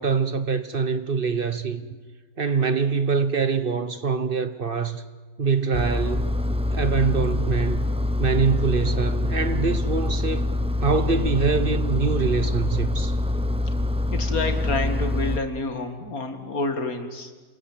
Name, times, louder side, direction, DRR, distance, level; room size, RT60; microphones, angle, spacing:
voice 1, 0.0-1.8 2.4-5.0 5.4-6.3 6.7-7.9 8.2-10.5 10.8-13.1, right 5 dB, 40° right, 1.1 m, -24 dB
Engine, 5.7-15.4, left 1 dB, 5° right, 0.5 m, -25 dB
voice 2, 14.1-17.3, left 3 dB, 85° left, 2.7 m, -29 dB
28.0 x 21.0 x 8.9 m
omnidirectional pair, 1.5 m